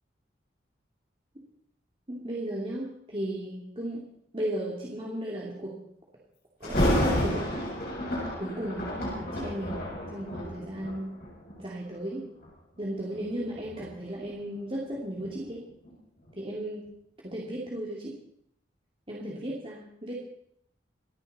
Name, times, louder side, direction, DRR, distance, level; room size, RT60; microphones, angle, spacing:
voice 1, 2.1-4.0 4.3-5.7 6.6-7.7 8.4-11.1 11.6-12.3 12.8-15.6 16.4-16.9 17.2-18.2 19.1-20.1, right 1 dB, 30° right, -4 dB, 2.6 m, -35 dB
Thunder, 6.6-11.6 12.3-12.5 13.1-15.9 16.3-16.4, equal, 55° left, 7.2 m, -30 dB
27.5 x 10.5 x 4.2 m, 0.69 s
head